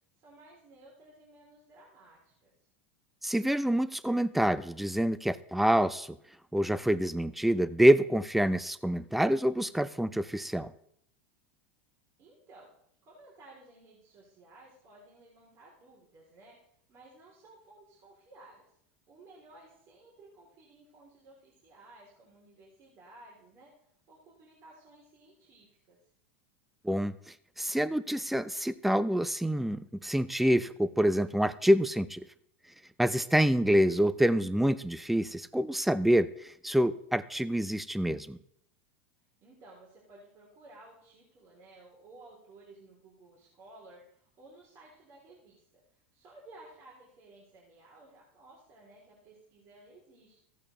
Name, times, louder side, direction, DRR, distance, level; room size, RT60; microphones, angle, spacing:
voice 1, 0.2-2.5 12.2-12.7 13.0-16.6 16.9-18.7 19.1-23.7 24.1-26.0 39.4-45.6 46.1-50.4, right 2 dB, 45° right, -4 dB, 3.5 m, -56 dB
voice 2, 3.2-6.2 6.5-10.7 26.8-27.1 27.6-32.3 33.0-38.4, equal, ahead, 16 dB, 0.4 m, -26 dB
14.5 x 8.4 x 3.3 m, 0.70 s
supercardioid pair, 110°, 7 cm